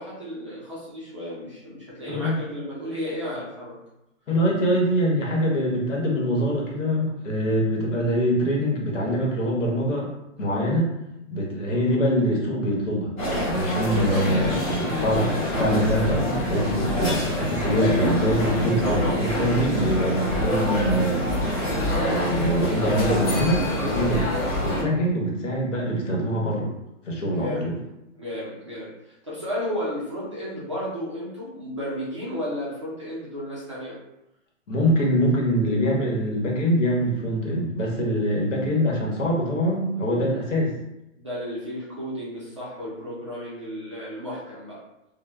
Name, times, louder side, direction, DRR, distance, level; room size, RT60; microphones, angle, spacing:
voice 1, 0.0-3.8 13.9-14.2 27.3-27.7 28.1-34.0 41.2-44.8, equal, 25° right, -8 dB, 0.4 m, -33 dB
voice 2, 4.3-10.1 10.4-10.9 11.3-13.1 13.4-21.2 21.9-26.7 27.1-27.7 34.7-40.7, equal, 70° left, -2 dB, 1.1 m, -24 dB
Crowd talking in Restaurant Eye Amsterdam, 13.2-24.8, equal, 30° left, 1.1 m, -25 dB
2.8 x 2.0 x 2.3 m, 0.88 s
hypercardioid pair, 155°, 38 cm